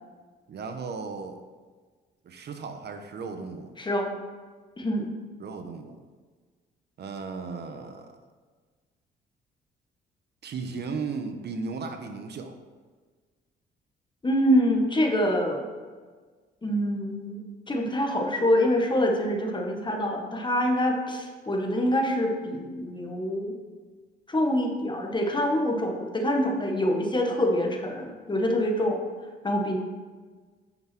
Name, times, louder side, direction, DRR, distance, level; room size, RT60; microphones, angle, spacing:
voice 1, 0.5-1.4 2.2-3.7 5.4-6.0 7.0-8.2 10.4-12.6, right 4 dB, 55° right, 7 dB, 1.0 m, -35 dB
voice 2, 3.8-4.2 4.8-5.1 14.2-15.7 16.6-23.5 24.3-29.0 29.4-29.8, equal, 25° left, 2 dB, 1.5 m, -25 dB
9.3 x 6.0 x 4.4 m, 1.4 s
cardioid pair, 90°, 20 cm